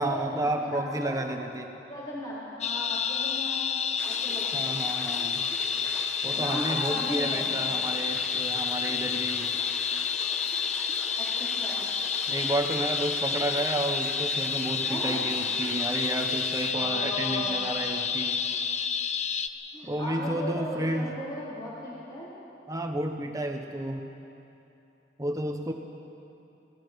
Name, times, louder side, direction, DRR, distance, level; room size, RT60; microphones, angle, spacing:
voice 1, 0.0-1.8 4.5-5.5 6.2-9.5 12.3-18.4 19.8-21.2 22.7-24.1 25.2-25.7, right 1 dB, 20° right, 4 dB, 1.0 m, -31 dB
voice 2, 0.6-1.2 1.9-4.8 6.4-7.7 11.2-11.8 14.9-15.2 16.7-17.6 19.7-22.3, left 1 dB, 25° left, -8 dB, 4.1 m, -37 dB
sound 1, 2.6-19.5, left 6 dB, 40° left, 0.7 m, -29 dB
sound 2, 4.0-16.7, equal, 5° left, 1.0 m, -43 dB
26.5 x 18.5 x 5.3 m, 2.8 s
head